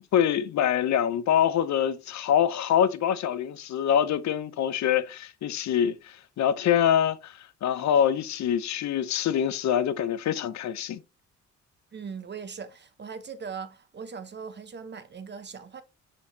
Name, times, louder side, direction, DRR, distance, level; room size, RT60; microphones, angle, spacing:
voice 1, 0.1-11.0, left 9 dB, 65° left, 0.7 m, -25 dB
voice 2, 11.9-15.8, right 6 dB, 35° right, 1.0 m, -40 dB
6.3 x 5.9 x 2.8 m
cardioid pair, 90°, 30 cm